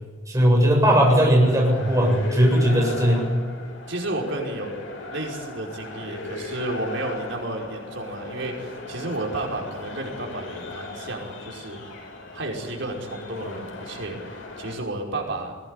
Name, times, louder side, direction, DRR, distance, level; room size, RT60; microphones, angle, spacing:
voice 1, 0.3-3.3, equal, 15° right, 0 dB, 7.5 m, -18 dB
sound 1, 1.4-14.8, left 2 dB, 75° left, 6.3 m, -38 dB
voice 2, 3.9-4.8 5.1-11.8 12.3-15.5, right 2 dB, 65° right, 1 dB, 5.3 m, -32 dB
22.0 x 17.5 x 9.9 m, 1.4 s
head